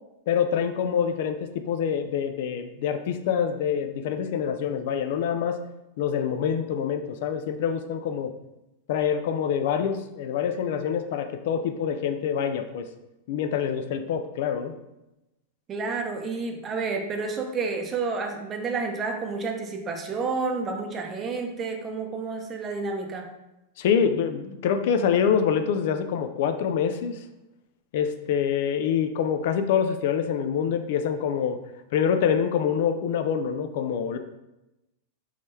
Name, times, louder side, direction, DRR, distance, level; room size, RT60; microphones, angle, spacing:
voice 1, 0.3-5.6 6.0-8.3 8.9-12.9 13.3-14.7 23.8-27.2 27.9-31.6 31.9-34.2, left 7 dB, 65° left, 8 dB, 0.3 m, -26 dB
voice 2, 15.7-23.3, right 4 dB, 25° right, 3 dB, 0.6 m, -30 dB
3.6 x 3.1 x 2.7 m, 0.94 s
hypercardioid pair, 125°, 0 cm